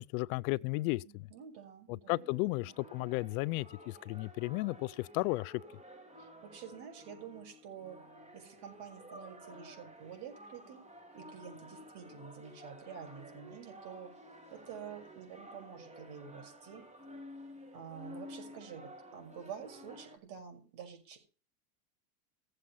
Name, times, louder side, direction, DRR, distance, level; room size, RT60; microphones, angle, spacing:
voice 1, 0.0-1.3 1.9-5.6, left 22 dB, 70° left, 0.6 m, -34 dB
voice 2, 1.0-2.8 6.2-8.0 8.3-10.8 11.1-14.1 14.5-16.8 17.7-21.2, right 7 dB, 60° right, 6.0 m, -49 dB
sound 1, 2.1-20.2, equal, 15° right, 3.8 m, -52 dB
16.0 x 7.8 x 5.6 m
supercardioid pair, 130°, 44 cm